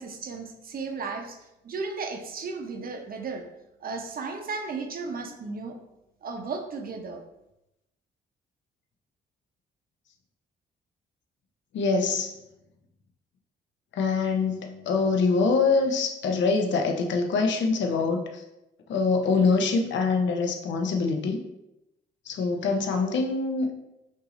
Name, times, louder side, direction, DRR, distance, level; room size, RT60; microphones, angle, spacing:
voice 1, 0.0-3.4 3.8-5.8 6.2-7.2, right 4 dB, 45° right, 4 dB, 0.7 m, -35 dB
voice 2, 11.7-12.3 13.9-18.4 18.9-21.4 22.3-23.7, left 4 dB, 65° left, 3 dB, 0.7 m, -24 dB
5.4 x 2.6 x 3.1 m, 0.89 s
cardioid pair, 90°, 20 cm